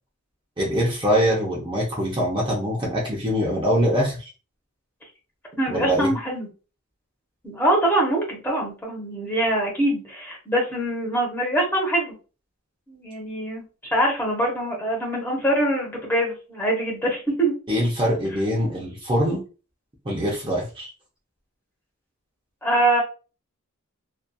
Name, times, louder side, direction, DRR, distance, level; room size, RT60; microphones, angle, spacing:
voice 1, 0.6-4.2 5.7-6.1 17.7-19.4 20.0-20.9, equal, 20° right, -3 dB, 0.6 m, -23 dB
voice 2, 5.6-6.5 7.4-12.1 12.9-17.5 22.6-23.0, right 1 dB, 10° left, -2 dB, 0.8 m, -24 dB
2.7 x 2.4 x 2.2 m, 0.34 s
head